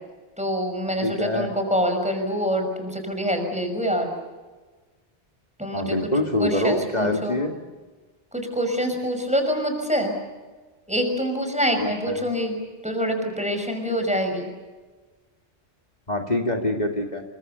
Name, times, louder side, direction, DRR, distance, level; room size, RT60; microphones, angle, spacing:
voice 1, 0.4-4.1 5.6-6.0 6.4-7.4 8.3-10.1 10.9-12.6 12.8-14.5, equal, 5° right, 5 dB, 6.0 m, -25 dB
voice 2, 1.0-1.5 5.7-7.6 11.8-12.3 16.1-17.2, left 1 dB, 40° left, 2 dB, 2.2 m, -25 dB
29.0 x 24.5 x 6.8 m, 1.3 s
omnidirectional pair, 1.2 m